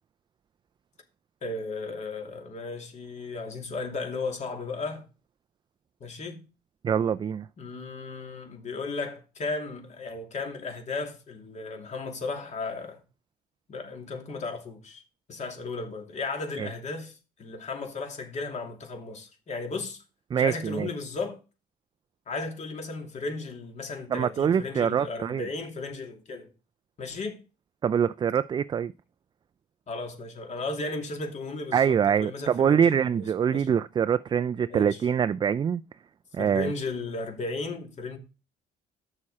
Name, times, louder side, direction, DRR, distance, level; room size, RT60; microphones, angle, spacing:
voice 1, 1.4-5.0 6.0-6.4 7.6-13.0 13.7-15.0 15.3-20.0 20.3-21.4 22.3-26.5 27.0-27.4 29.9-33.8 34.7-35.0 36.4-38.2, left 3 dB, 45° left, 2.7 m, -35 dB
voice 2, 6.8-7.5 16.6-16.7 20.3-20.9 24.1-25.5 27.8-28.9 31.7-35.8 36.3-36.7, right 8 dB, 25° right, 0.3 m, -24 dB
8.7 x 6.5 x 4.2 m
cardioid pair, 110°, 17 cm